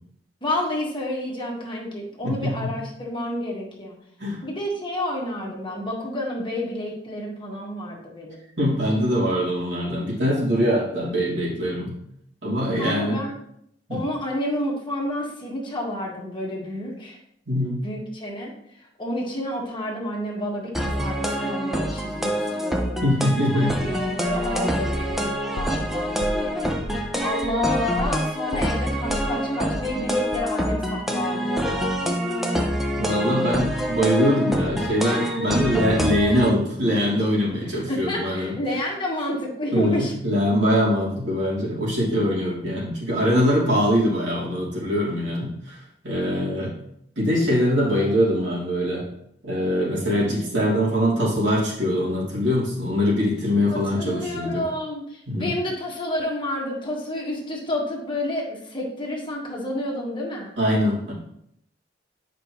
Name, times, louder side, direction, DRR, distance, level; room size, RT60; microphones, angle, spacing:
voice 1, 0.4-3.9 4.4-8.4 12.7-13.3 13.9-17.2 17.8-18.5 19.0-23.0 23.5-26.7 27.2-31.8 33.2-33.7 37.6-40.1 46.2-46.5 53.7-60.5, left 1 dB, 30° left, -2 dB, 1.5 m, -30 dB
voice 2, 2.2-2.7 4.2-4.4 8.6-12.0 12.4-13.2 13.9-14.0 17.5-17.8 23.0-23.8 33.0-38.5 39.7-45.8 46.0-46.7 47.2-49.0 49.4-54.6 55.3-55.5 60.6-61.1, equal, 75° right, -6 dB, 3.0 m, -23 dB
sound 1, 20.7-36.5, equal, ahead, 0.8 m, -26 dB
sound 2, 24.2-25.9 26.2-28.3 28.5-30.1 30.3-30.4, left 1 dB, 80° left, 0.6 m, -34 dB
9.1 x 5.2 x 3.0 m, 0.73 s
head